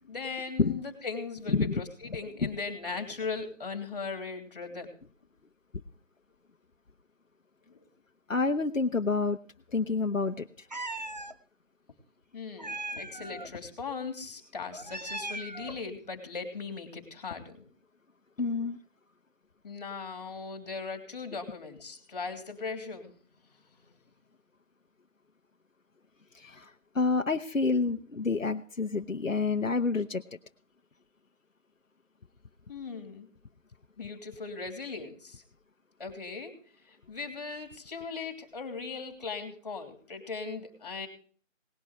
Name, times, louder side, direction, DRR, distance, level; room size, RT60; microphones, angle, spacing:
voice 1, 0.0-4.9 7.7-7.8 12.3-17.7 19.6-23.1 32.7-33.3 34.0-35.4 36.0-36.5 36.9-41.1, left 4 dB, 30° left, 5 dB, 3.1 m, -38 dB
voice 2, 8.3-9.4 9.7-10.5 18.4-18.8 26.3-30.2, left 4 dB, 85° left, 7 dB, 1.1 m, -28 dB
Meow, 10.7-11.3 12.6-13.5 14.7-15.9, right 2 dB, 35° right, 0.6 m, -38 dB
19.0 x 11.5 x 3.1 m, 0.42 s
figure-of-eight pair, 165°, 38 cm